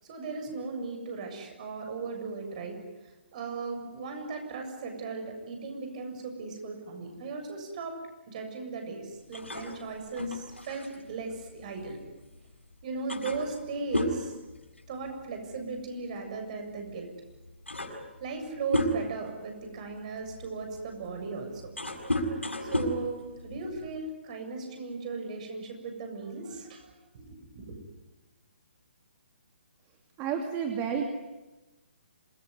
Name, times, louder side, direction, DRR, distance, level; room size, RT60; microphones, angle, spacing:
voice 1, 0.0-2.8 3.3-8.0 8.3-12.0 12.8-14.3 14.9-17.1 18.2-21.7 22.6-27.7, right 4 dB, 40° right, 4 dB, 7.4 m, -37 dB
sound 1, 9.3-12.4 12.7-12.8 13.1-15.3 15.5-15.8 16.8-16.9 17.3-19.3 19.9-24.0, left 1 dB, 85° left, 7.0 m, -33 dB
voice 2, 30.2-31.0, right 7 dB, 25° right, 3 dB, 2.7 m, -30 dB
27.0 x 22.0 x 9.7 m, 1.1 s
figure-of-eight pair, 135°, 6 cm